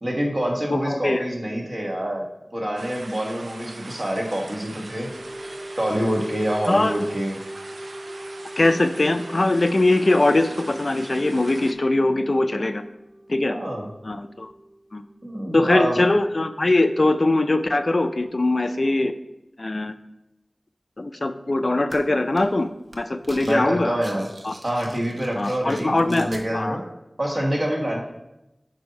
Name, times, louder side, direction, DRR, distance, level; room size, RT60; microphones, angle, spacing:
voice 1, 0.0-2.2 2.5-5.1 5.8-7.3 13.5-13.9 15.2-16.0 23.4-24.3 24.6-26.8 27.2-28.0, equal, 45° right, -2 dB, 1.6 m, -26 dB
voice 2, 0.7-1.2 6.7-6.9 8.6-12.8 13.3-13.6 14.0-14.5 14.9-15.0 15.5-19.1 19.6-19.9 21.0-24.0 24.4-24.5 25.4-26.8, left 2 dB, 60° left, 9 dB, 0.4 m, -21 dB
sound 1, 2.8-11.7, right 2 dB, 90° right, 0.4 m, -42 dB
sound 2, 4.7-15.6, right 1 dB, 10° right, 0.4 m, -40 dB
sound 3, 21.9-22.0 22.4-22.6 22.9-23.6 23.8-26.4, right 1 dB, 65° right, 0.8 m, -43 dB
8.0 x 2.8 x 5.3 m, 0.92 s
wide cardioid pair, 40°, 0 cm